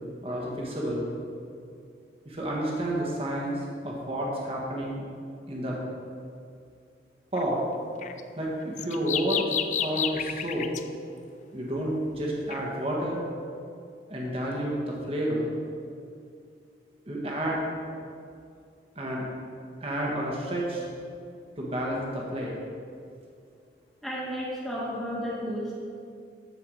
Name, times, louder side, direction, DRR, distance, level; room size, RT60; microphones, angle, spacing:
voice 1, 0.2-1.1 2.2-5.0 5.5-5.8 7.3-7.6 8.4-9.5 9.7-10.7 11.5-13.2 14.1-15.5 17.1-17.6 18.9-19.3 19.8-20.8 21.6-22.5, right 1 dB, 35° right, -3 dB, 1.5 m, -30 dB
sound 1, 7.4-7.5 8.0-10.8 12.5-12.6, left 8 dB, 40° left, 0.4 m, -31 dB
voice 2, 24.0-25.8, equal, ahead, -7 dB, 1.7 m, -32 dB
13.5 x 4.9 x 5.0 m, 2.4 s
head